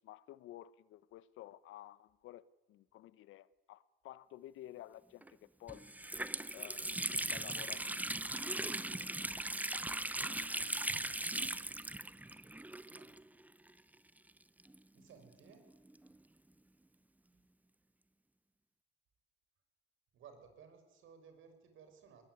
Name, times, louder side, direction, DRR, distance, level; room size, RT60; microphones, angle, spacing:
voice 1, 0.0-5.9 6.5-7.8, left 14 dB, 90° left, 0.9 m, -53 dB
Water tap faucet, 5.2-5.3 5.7-13.4 13.7-13.8 14.6-16.2, right 1 dB, 10° right, 0.8 m, -39 dB
voice 2, 14.9-15.6 20.1-22.2, right 6 dB, 80° right, 6.0 m, -58 dB
20.5 x 19.5 x 9.4 m
cardioid pair, 90°, 20 cm